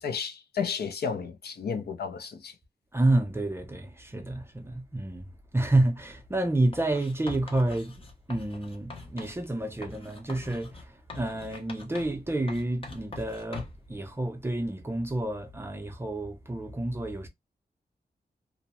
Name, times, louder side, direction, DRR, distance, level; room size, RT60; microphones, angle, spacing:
voice 1, 0.0-2.5, left 6 dB, 80° left, 0.6 m, -32 dB
voice 2, 2.9-17.3, right 2 dB, 15° right, 0.5 m, -29 dB
Writing, 6.7-9.4 9.8-12.2 12.5-13.9, left 3 dB, 35° left, 0.6 m, -43 dB
2.6 x 2.0 x 2.8 m
wide cardioid pair, 160°, 16 cm